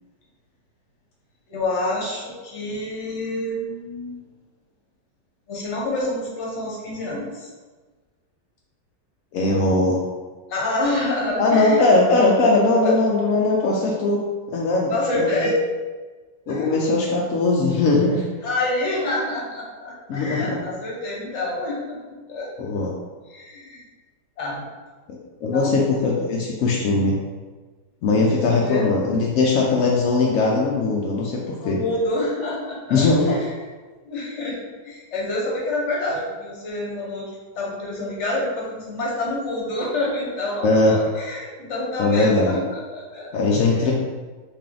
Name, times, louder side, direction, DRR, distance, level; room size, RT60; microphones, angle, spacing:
voice 1, 1.5-4.2 5.5-7.5 10.5-11.8 12.8-12.9 14.9-15.6 16.5-16.7 18.4-22.5 23.3-23.8 24.4-24.6 25.5-26.0 28.4-28.8 31.6-33.5 34.0-34.6 34.8-37.2 37.5-43.3, left 2 dB, 50° left, -3 dB, 1.1 m, -27 dB
voice 2, 9.3-10.0 11.4-14.2 14.5-15.5 16.5-18.2 20.1-20.6 22.6-22.9 25.1-27.2 28.0-31.8 32.9-33.4 40.6-40.9 42.0-42.6 43.3-43.9, left 3 dB, 75° left, -3 dB, 0.8 m, -20 dB
3.5 x 2.8 x 3.7 m, 1.3 s
omnidirectional pair, 1.9 m